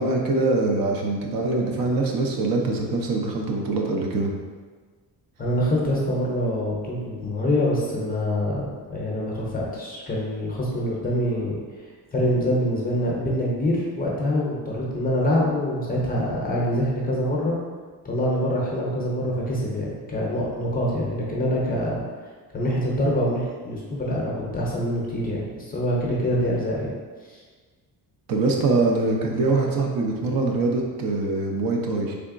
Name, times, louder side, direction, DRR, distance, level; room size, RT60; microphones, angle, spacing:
voice 1, 0.0-4.3 28.3-32.1, right 3 dB, 60° right, 0 dB, 0.6 m, -23 dB
voice 2, 5.4-11.6 12.1-17.6 18.0-22.0 22.5-26.9, equal, 25° left, -4 dB, 0.6 m, -25 dB
3.7 x 3.5 x 2.5 m, 1.5 s
cardioid pair, 165°, 39 cm